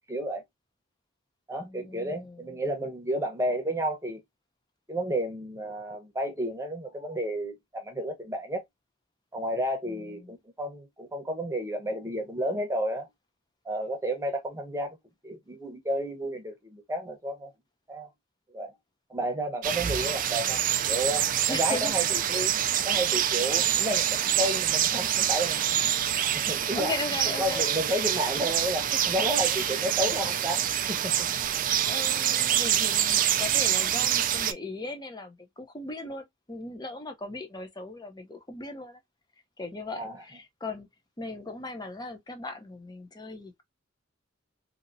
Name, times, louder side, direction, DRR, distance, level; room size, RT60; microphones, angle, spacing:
voice 1, 0.1-0.4 1.5-4.2 4.9-8.6 9.3-13.1 13.6-15.0 15.2-17.5 17.9-18.1 18.5-18.7 19.1-20.6 20.9-22.5 22.8-25.9 26.3-26.9 27.4-30.6 30.9-31.3 40.0-40.1, right 1 dB, 15° right, 0.9 m, -31 dB
voice 2, 1.6-2.6 9.9-10.3 21.5-21.9 26.7-27.7 29.6-29.8 31.8-39.0 39.6-40.9 41.2-43.6, left 2 dB, 20° left, 0.7 m, -38 dB
sound 1, 19.6-34.5, right 10 dB, 45° right, 0.4 m, -26 dB
2.8 x 2.8 x 2.6 m
head